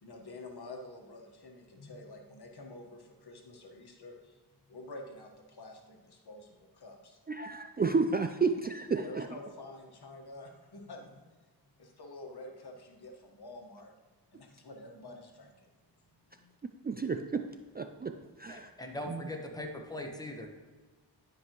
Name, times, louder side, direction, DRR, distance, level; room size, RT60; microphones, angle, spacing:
voice 1, 0.0-4.4 4.7-7.2 9.0-11.2 11.8-13.9 14.3-15.7 16.0-16.5, left 2 dB, 65° left, 2 dB, 1.5 m, -48 dB
voice 2, 7.3-9.3 16.8-17.5 17.7-18.7 19.1-19.2, right 4 dB, 25° right, 7 dB, 0.4 m, -31 dB
voice 3, 18.5-20.5, left 1 dB, 10° left, 2 dB, 1.3 m, -40 dB
12.0 x 5.3 x 3.1 m, 1.3 s
cardioid pair, 55°, 41 cm